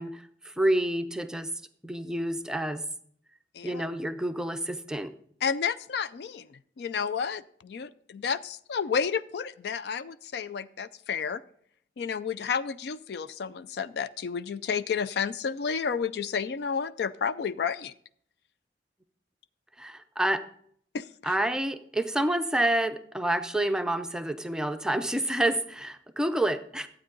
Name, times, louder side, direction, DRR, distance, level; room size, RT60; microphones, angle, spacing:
voice 1, 0.0-1.5 1.8-2.8 3.6-5.1 19.8-20.4 21.2-26.9, right 1 dB, 5° right, 8 dB, 0.5 m, -28 dB
voice 2, 5.4-11.4 12.0-17.9 20.9-21.4, left 6 dB, 60° left, 15 dB, 0.4 m, -31 dB
12.0 x 8.6 x 3.8 m, 0.64 s
head